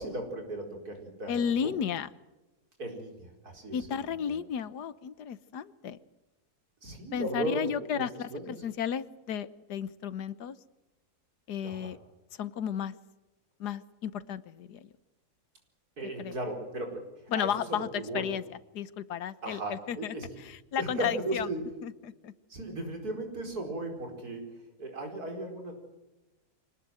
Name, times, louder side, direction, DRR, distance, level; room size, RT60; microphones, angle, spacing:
voice 1, 0.0-1.8 2.8-3.8 4.1-4.4 6.8-8.6 11.6-11.9 16.0-18.3 19.4-20.3 20.8-21.6 22.5-24.5 24.8-25.7, right 1 dB, 70° right, 3 dB, 5.4 m, -36 dB
voice 2, 1.3-2.1 3.7-6.0 7.1-10.6 11.5-12.0 12.3-12.9 13.6-14.9 16.2-16.3 17.3-21.5 21.8-22.3, left 8 dB, 85° left, 15 dB, 1.5 m, -33 dB
24.5 x 19.5 x 7.8 m, 1.0 s
omnidirectional pair, 1.7 m